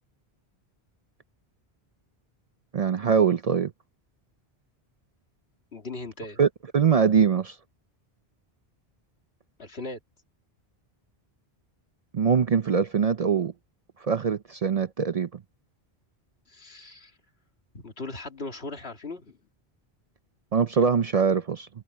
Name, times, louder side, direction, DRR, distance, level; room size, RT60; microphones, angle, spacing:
voice 1, 2.7-3.7 6.4-6.5 6.7-7.6 12.1-13.5 14.0-15.3 20.5-21.7, right 6 dB, 50° right, 0.5 m, -22 dB
voice 2, 5.7-6.4 9.6-10.0 16.5-17.1 17.7-19.4, left 2 dB, 80° left, 2.6 m, -38 dB
omnidirectional pair, 1.0 m